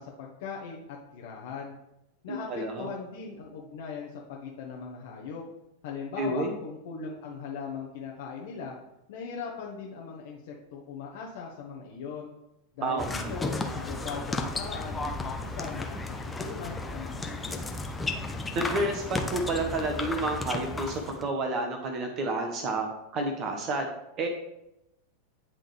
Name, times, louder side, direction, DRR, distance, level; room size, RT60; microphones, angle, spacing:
voice 1, 0.0-1.8 2.2-5.4 5.8-8.8 9.1-12.3 12.8-17.6, left 5 dB, 55° left, -2 dB, 1.0 m, -39 dB
voice 2, 2.3-2.9 6.2-6.5 12.8-13.3 18.5-22.9 23.1-23.9 24.2-24.3, right 2 dB, 35° right, 4 dB, 1.0 m, -30 dB
sound 1, 13.0-21.3, left 2 dB, 10° left, 0.7 m, -34 dB
9.8 x 3.8 x 3.4 m, 0.88 s
figure-of-eight pair, 90°, 0 cm